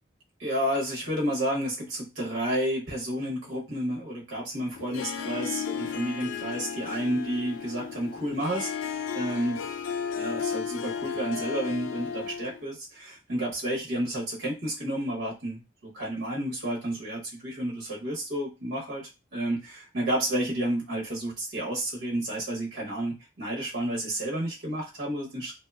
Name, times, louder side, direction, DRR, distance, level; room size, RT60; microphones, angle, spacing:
voice 1, 0.4-8.7 9.1-9.6 10.2-25.5, right 1 dB, 75° right, -3 dB, 0.9 m, -31 dB
Harp, 4.7-12.6, left 7 dB, 80° left, 0.3 m, -34 dB
2.7 x 2.1 x 2.3 m, 0.27 s
head